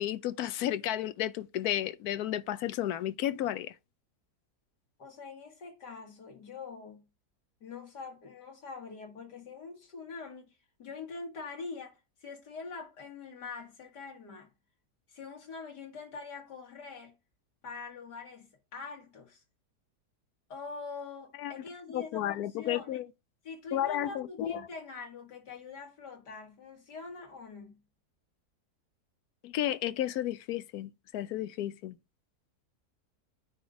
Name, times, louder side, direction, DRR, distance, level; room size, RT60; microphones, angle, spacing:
voice 1, 0.0-3.7 21.4-21.5 21.9-23.0 23.7-24.6 29.4-32.0, left 12 dB, 75° left, 1.1 m, -32 dB
voice 2, 5.0-7.1 7.6-14.5 15.1-17.1 17.6-19.4 20.5-23.1 23.4-27.8, left 4 dB, 90° left, 2.6 m, -44 dB
9.3 x 4.0 x 5.0 m
omnidirectional pair, 1.7 m